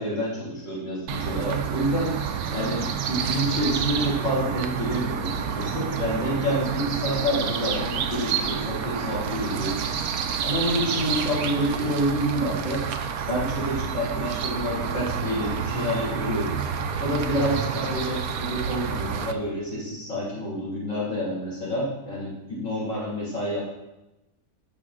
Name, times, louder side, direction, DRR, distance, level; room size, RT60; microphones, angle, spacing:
voice 1, 0.0-2.1 2.5-9.9 10.4-12.9 13.3-16.6 17.0-23.6, equal, 50° left, -7 dB, 3.1 m, -28 dB
sound 1, 1.1-19.3, right 7 dB, 70° right, 1.1 m, -29 dB
17.5 x 6.0 x 2.4 m, 0.96 s
omnidirectional pair, 1.7 m